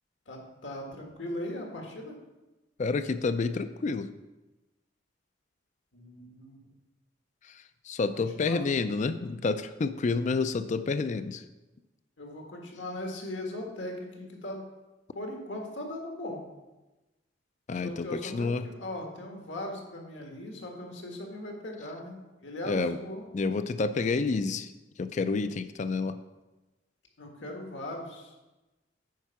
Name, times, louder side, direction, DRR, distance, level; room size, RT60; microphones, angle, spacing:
voice 1, 0.3-2.2 5.9-6.6 8.1-8.6 12.2-14.6 15.1-16.4 17.7-23.3 27.2-28.3, left 1 dB, 75° left, 1 dB, 1.7 m, -39 dB
voice 2, 2.8-4.1 7.9-11.4 17.7-18.7 22.6-23.0 23.3-24.7 25.0-26.2, left 4 dB, 40° left, 11 dB, 0.4 m, -29 dB
9.4 x 4.5 x 5.8 m, 1.1 s
head